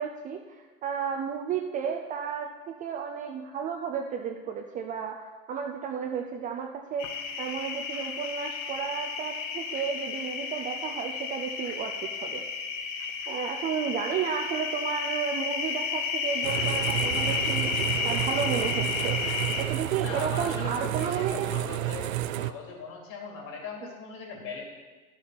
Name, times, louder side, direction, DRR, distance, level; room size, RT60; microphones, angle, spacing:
voice 1, 0.0-12.5 13.3-17.7 18.0-19.2 19.6-21.5, right 7 dB, 20° right, 3 dB, 0.4 m, -33 dB
sound 1, 7.0-19.6, left 5 dB, 60° left, 1.4 m, -32 dB
sound 2, 16.4-22.5, right 13 dB, 70° right, 0.6 m, -31 dB
voice 2, 20.0-22.1 22.4-24.6, left 5 dB, 45° left, 0 dB, 3.0 m, -39 dB
11.0 x 6.7 x 5.9 m, 1.3 s
hypercardioid pair, 115°, 42 cm